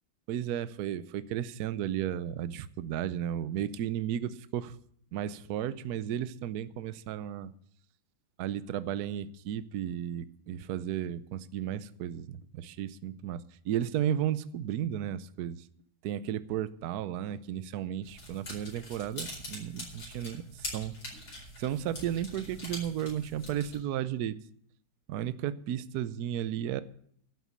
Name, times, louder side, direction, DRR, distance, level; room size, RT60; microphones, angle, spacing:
voice 1, 0.3-4.8 5.1-7.5 8.4-15.6 16.0-20.9 21.6-24.4 25.1-26.8, right 10 dB, 65° right, 14 dB, 1.0 m, -34 dB
sound 1, 18.0-23.8, left 1 dB, 50° left, 5.3 m, -43 dB
11.5 x 8.3 x 8.3 m, 0.64 s
omnidirectional pair, 2.2 m